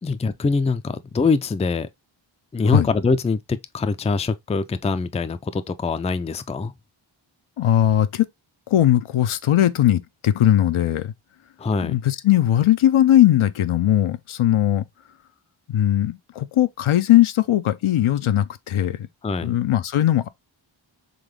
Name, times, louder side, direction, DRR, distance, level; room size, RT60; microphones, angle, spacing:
voice 1, 0.0-1.9 2.5-6.7 11.6-11.9 19.2-19.5, left 4 dB, 15° left, 0.3 m, -23 dB
voice 2, 7.6-8.3 8.7-11.1 11.8-14.9 15.7-19.1 19.4-20.3, left 12 dB, 85° left, 0.6 m, -19 dB
3.9 x 3.5 x 3.2 m
wide cardioid pair, 70°, 48 cm